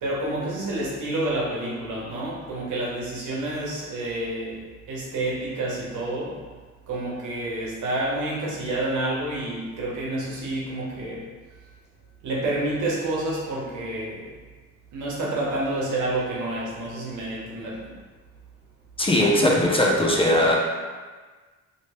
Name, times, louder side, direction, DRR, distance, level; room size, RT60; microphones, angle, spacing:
voice 1, 0.0-6.4 6.9-11.3 12.2-14.3 14.9-17.9, right 1 dB, 80° right, -5 dB, 1.1 m, -29 dB
voice 2, 19.0-20.6, left 1 dB, 20° left, -3 dB, 0.6 m, -19 dB
3.1 x 2.9 x 3.0 m, 1.4 s
cardioid pair, 90°, 30 cm